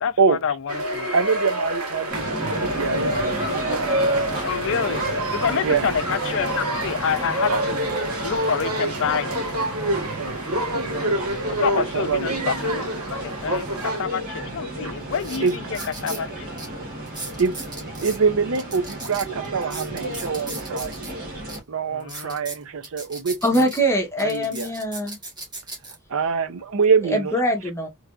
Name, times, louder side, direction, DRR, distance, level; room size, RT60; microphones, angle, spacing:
voice 1, 0.0-1.1 4.4-5.0 5.3-7.9 8.2-9.3 11.5-12.9 13.2-15.5 16.0-16.5 21.9-22.4, left 7 dB, 60° left, 0.5 m, -27 dB
sound 1, 0.7-14.0, right 1 dB, 85° right, 1.6 m, -27 dB
voice 2, 1.1-4.0 5.6-5.9 10.2-11.2 11.8-12.4 14.8-14.9 15.4-15.8 17.4-20.9 21.7-23.7 24.2-24.7 26.1-27.3, right 5 dB, 65° right, 0.6 m, -25 dB
sound 2, 2.1-21.6, right 1 dB, 45° right, 1.6 m, -33 dB
sound 3, 14.5-14.6 15.1-16.2 16.6-16.7 17.1-18.2 18.5-21.1 21.5-21.6 22.0-23.8 24.2-25.9 26.6-26.8, right 2 dB, 20° right, 1.5 m, -37 dB
voice 3, 23.4-25.2 27.0-27.9, equal, 10° left, 1.0 m, -23 dB
3.4 x 3.2 x 2.4 m
head